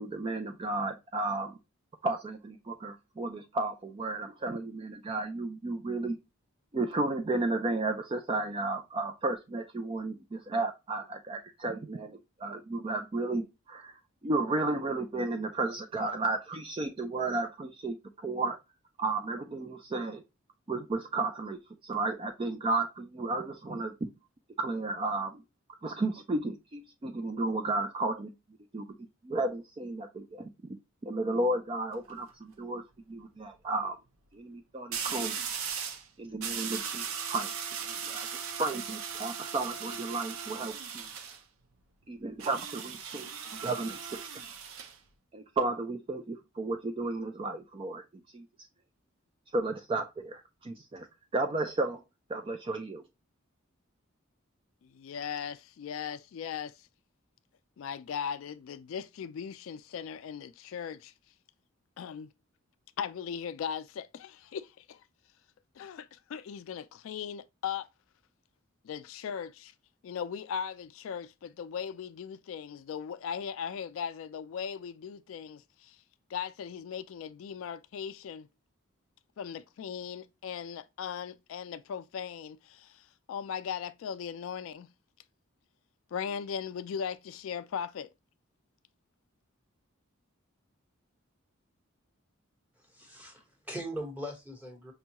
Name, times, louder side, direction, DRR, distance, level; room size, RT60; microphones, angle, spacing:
voice 1, 0.0-1.6 2.0-6.2 6.7-18.6 19.0-20.2 20.7-23.9 24.6-25.4 25.8-28.3 28.7-28.8 29.2-30.8 31.0-34.0 34.3-35.3 36.2-37.5 37.8-41.1 42.1-43.3 43.6-44.4 45.3-48.0 48.3-48.5 49.5-51.1 51.3-52.0 52.3-53.0, right 2 dB, 25° right, 0.3 m, -33 dB
sound 1, 31.8-32.1 34.9-36.1 36.4-41.4 42.4-45.0, right 7 dB, 85° right, 0.6 m, -38 dB
voice 2, 54.8-56.9 57.8-61.1 62.0-62.3 63.0-65.0 65.8-67.9 68.8-69.7 70.0-76.0 76.3-78.5 79.4-84.9 86.1-88.1, left 7 dB, 70° left, 0.3 m, -38 dB
voice 3, 92.8-94.9, equal, 10° right, 1.1 m, -40 dB
5.3 x 2.3 x 2.8 m
head